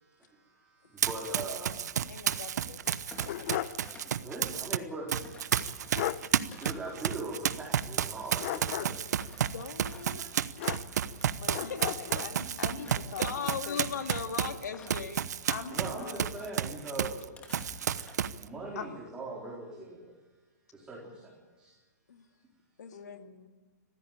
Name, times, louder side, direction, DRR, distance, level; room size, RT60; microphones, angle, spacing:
voice 1, 0.0-1.9 3.9-5.1 6.3-9.0 10.2-10.3 15.7-17.2 18.4-20.1 20.7-21.7, right 2 dB, 10° right, -3 dB, 4.1 m, -41 dB
Run, 1.0-4.8 5.1-17.2 17.5-18.4, right 9 dB, 75° right, 1.0 m, -32 dB
voice 2, 2.1-2.8 3.2-3.6 9.5-10.2 11.5-12.4 13.1-15.2 22.1-22.3 22.8-23.2, left 6 dB, 85° left, 6 dB, 2.2 m, -39 dB
sound 1, 2.8-3.9 4.2-4.3 5.6-5.7 5.9-6.3 8.4-9.1 10.6-11.2 11.5-12.3, left 13 dB, 45° left, 0.8 m, -35 dB
Thump thud, 3.0-4.8 5.2-11.6 11.9-13.5 13.9-15.1 15.6-16.7 17.1-18.3 18.6-18.9, left 4 dB, 15° left, 2.5 m, -53 dB
voice 3, 11.3-13.8 15.5-16.2 18.7-18.9 22.9-23.5, left 6 dB, 65° left, 4 dB, 3.2 m, -42 dB
22.0 x 15.5 x 9.0 m, 1.3 s
hypercardioid pair, 150°, 9 cm